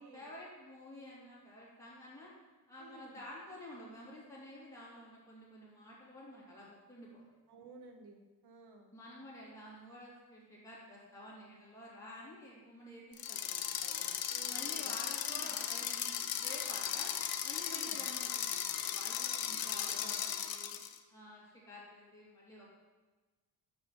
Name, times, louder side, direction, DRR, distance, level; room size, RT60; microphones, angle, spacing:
voice 1, 0.0-2.3 2.7-7.2 8.9-14.1 14.5-17.1 17.4-20.7 21.1-22.7, left 1 dB, 10° left, -7 dB, 2.6 m, -51 dB
voice 2, 2.8-3.2 7.5-8.9 14.3-15.5 17.6-18.0 19.6-20.2, right 3 dB, 80° right, 5 dB, 1.1 m, -55 dB
sound 1, 13.1-21.0, left 9 dB, 65° left, 0.6 m, -37 dB
6.2 x 5.5 x 5.5 m, 1.2 s
wide cardioid pair, 150°, 39 cm